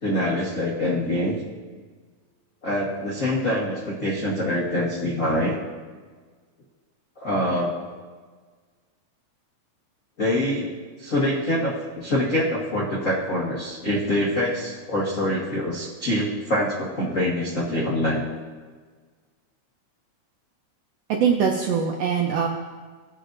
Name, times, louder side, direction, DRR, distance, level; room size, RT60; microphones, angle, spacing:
voice 1, 0.0-1.4 2.6-5.6 7.2-7.7 10.2-10.7 11.0-18.3, left 1 dB, 85° left, -6 dB, 0.7 m, -25 dB
voice 2, 21.1-22.5, right 6 dB, 80° right, 2 dB, 1.4 m, -22 dB
17.0 x 6.5 x 2.5 m, 1.5 s
omnidirectional pair, 3.5 m